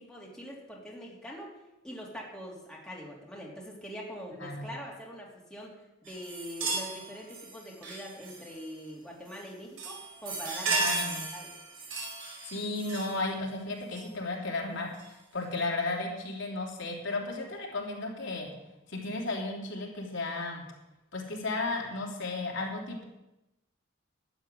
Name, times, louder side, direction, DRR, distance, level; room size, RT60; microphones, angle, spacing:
voice 1, 0.0-1.5 1.8-5.7 6.0-10.9 11.3-11.5, equal, 5° left, -4 dB, 3.0 m, -43 dB
sound 1, 6.1-8.7 9.3-9.5 9.8-13.3 13.9-14.1 14.9-15.1, right 3 dB, 75° right, 4.4 m, -35 dB
voice 2, 10.7-11.2 12.4-18.5 18.9-20.6 21.1-23.0, left 2 dB, 65° left, -1 dB, 3.2 m, -34 dB
12.5 x 8.0 x 9.2 m, 0.96 s
head